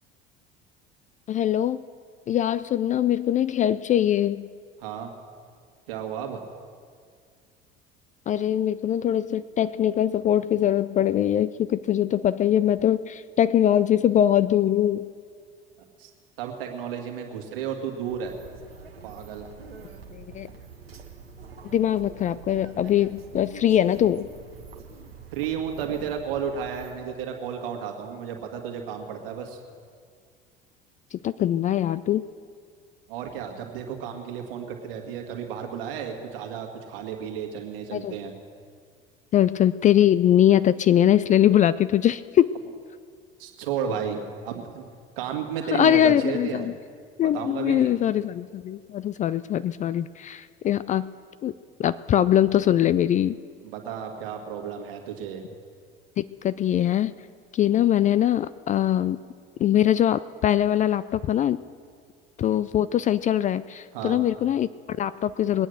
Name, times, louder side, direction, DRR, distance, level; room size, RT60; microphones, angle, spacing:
voice 1, 1.3-1.8 2.3-4.5 8.3-15.1 20.1-20.5 21.7-24.3 31.1-32.3 37.9-38.1 39.3-42.5 45.7-46.7 47.2-51.1 51.4-51.5 51.8-53.4 56.2-57.1 57.5-59.2 59.6-61.6 62.4-65.7, left 11 dB, 25° left, 16 dB, 0.3 m, -22 dB
voice 2, 4.8-5.1 5.9-6.4 16.0-16.1 16.4-18.4 19.0-19.4 25.3-29.6 33.1-38.3 43.4-44.9 45.2-46.7 47.2-47.9 53.6-55.5 63.9-64.2, right 8 dB, 70° right, 2 dB, 2.1 m, -33 dB
sound 1, 18.1-26.9, right 5 dB, 85° right, 1.3 m, -45 dB
21.5 x 9.1 x 6.5 m, 2.1 s
figure-of-eight pair, 65°, 29 cm